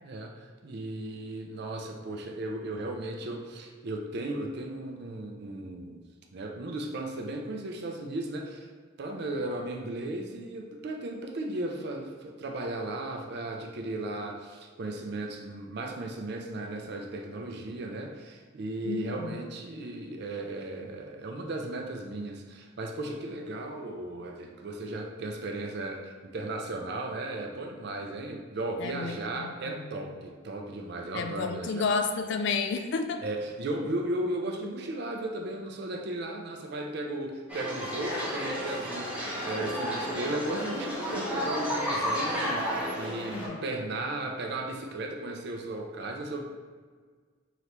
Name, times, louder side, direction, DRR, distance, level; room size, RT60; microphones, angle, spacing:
voice 1, 0.0-6.0 6.3-8.7 9.0-31.9 33.2-46.5, right 2 dB, 55° right, 2 dB, 0.4 m, -36 dB
voice 2, 18.8-19.4 28.8-30.1 31.1-33.2 43.3-43.6, left 4 dB, 60° left, 7 dB, 0.3 m, -31 dB
sound 1, 37.5-43.5, equal, 5° right, 0.7 m, -32 dB
3.7 x 3.3 x 3.0 m, 1.5 s
head